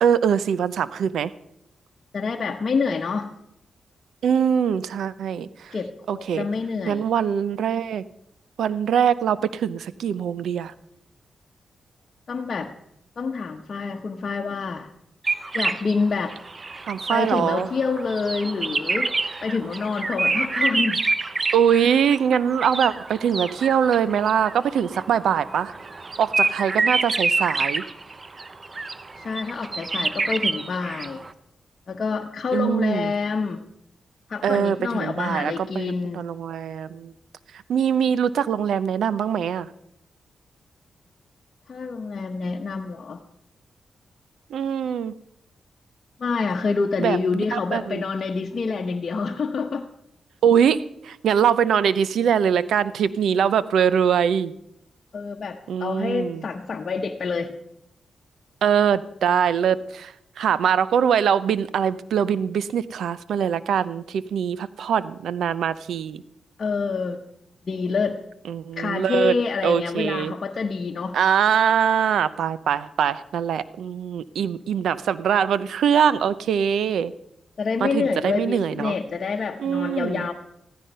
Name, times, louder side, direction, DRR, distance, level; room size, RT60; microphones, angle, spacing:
voice 1, 0.0-1.3 4.2-5.7 6.1-6.5 6.9-8.0 8.6-10.7 16.9-17.7 21.5-25.7 26.2-27.8 32.5-33.1 34.4-37.1 37.7-39.7 44.5-45.1 47.0-48.0 50.4-50.8 51.0-54.5 55.7-56.4 58.6-66.2 68.5-69.3 69.6-70.3 71.1-77.1 77.8-79.0 79.6-80.3, right 8 dB, 90° right, 17 dB, 0.7 m, -22 dB
voice 2, 2.1-3.4 5.7-7.0 12.3-12.7 13.2-14.9 15.5-16.4 17.1-19.1 19.4-21.1 29.2-31.2 31.9-33.6 34.3-36.2 41.7-43.2 46.2-49.9 55.1-57.5 66.6-67.2 67.6-68.2 68.8-71.2 77.6-80.3, left 4 dB, 50° left, 1 dB, 1.1 m, -27 dB
sound 1, 15.2-31.3, right 3 dB, 40° right, 0.9 m, -27 dB
15.0 x 14.0 x 5.5 m, 0.76 s
cardioid pair, 75°, 0 cm